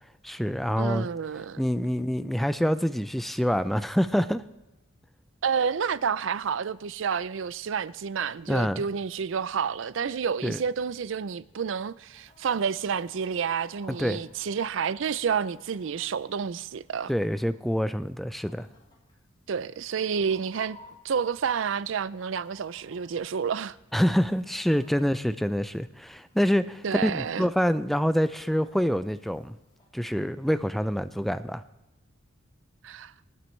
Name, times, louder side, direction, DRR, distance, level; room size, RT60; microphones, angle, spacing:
voice 1, 0.2-1.1 1.6-4.4 8.5-8.8 10.4-10.6 13.9-14.2 17.1-18.7 23.9-29.6 29.9-31.6, equal, ahead, 0.3 m, -26 dB
voice 2, 0.8-1.6 5.4-17.1 19.5-20.8 21.0-23.8 26.8-27.5 32.8-33.1, right 6 dB, 70° right, 0.4 m, -29 dB
Chicken rooster, 12.1-29.9, left 2 dB, 25° left, 3.2 m, -59 dB
25.0 x 9.2 x 3.2 m
head